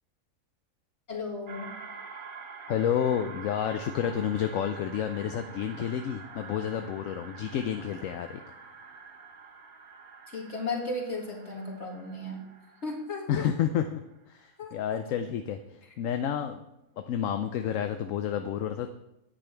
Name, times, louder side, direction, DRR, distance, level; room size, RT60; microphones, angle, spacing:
voice 1, 1.1-1.7 10.3-12.4 12.8-13.5 14.6-14.7, left 2 dB, 50° left, -1 dB, 2.2 m, -35 dB
sound 1, 1.5-14.2, right 5 dB, 80° right, 1.6 m, -47 dB
voice 2, 2.7-8.4 13.3-14.0 14.3-16.6 17.0-18.9, left 9 dB, 70° left, 7 dB, 0.9 m, -30 dB
10.0 x 8.6 x 4.5 m, 0.90 s
omnidirectional pair, 1.5 m